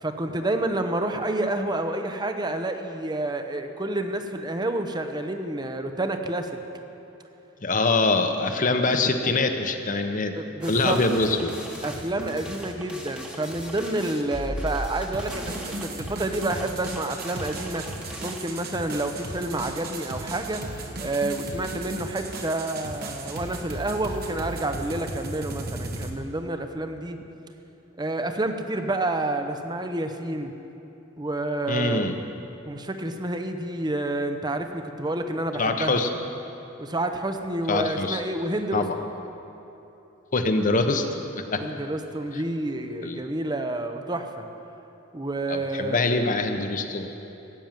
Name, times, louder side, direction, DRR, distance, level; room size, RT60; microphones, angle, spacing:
voice 1, 0.0-6.6 10.3-11.0 11.8-17.8 18.2-27.2 28.0-30.5 31.2-32.1 32.7-36.0 36.8-38.9 41.6-44.5 45.1-46.0, right 2 dB, 20° right, 6 dB, 0.8 m, -29 dB
voice 2, 7.6-10.4 10.7-11.5 31.7-32.2 35.6-36.1 37.7-38.2 38.7-38.9 40.3-41.6 43.0-43.2 45.5-47.1, left 3 dB, 40° left, 6 dB, 1.0 m, -24 dB
sound 1, 10.6-18.4, equal, 5° right, 1.2 m, -38 dB
sound 2, 15.1-26.1, right 2 dB, 50° right, 1.4 m, -36 dB
15.5 x 9.1 x 7.5 m, 3.0 s
head